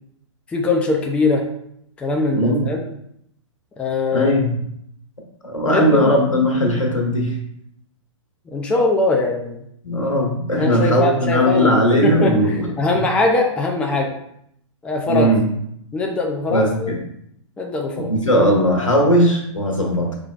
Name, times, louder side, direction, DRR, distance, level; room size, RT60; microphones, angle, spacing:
voice 1, 0.5-1.4 2.0-2.8 3.8-4.3 5.6-6.1 8.5-9.6 10.6-11.8 12.0-14.1 14.8-15.3 15.9-16.9 17.6-18.1, left 3 dB, 5° left, 1 dB, 0.4 m, -21 dB
voice 2, 2.3-2.7 4.1-4.5 5.4-7.4 9.8-12.7 12.9-13.0 15.1-15.4 16.5-17.0 18.0-20.1, equal, 85° left, 0 dB, 1.3 m, -18 dB
4.8 x 3.1 x 2.4 m, 0.74 s
figure-of-eight pair, 115°, 16 cm